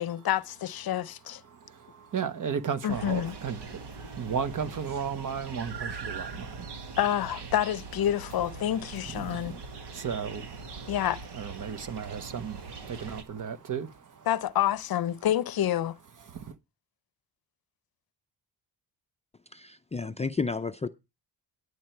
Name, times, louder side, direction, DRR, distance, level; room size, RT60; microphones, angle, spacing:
voice 1, 0.0-1.4 2.8-3.3 7.0-9.6 10.9-11.2 14.3-16.0, left 11 dB, 60° left, 0.7 m, -28 dB
voice 2, 1.4-7.0 9.0-11.0 11.3-14.3 16.2-16.5, right 7 dB, 45° right, 1.2 m, -35 dB
sound 1, 2.9-13.2, right 4 dB, 75° right, 1.9 m, -41 dB
voice 3, 19.5-20.9, left 4 dB, 15° left, 0.5 m, -31 dB
11.0 x 8.1 x 4.5 m
cardioid pair, 100°, 42 cm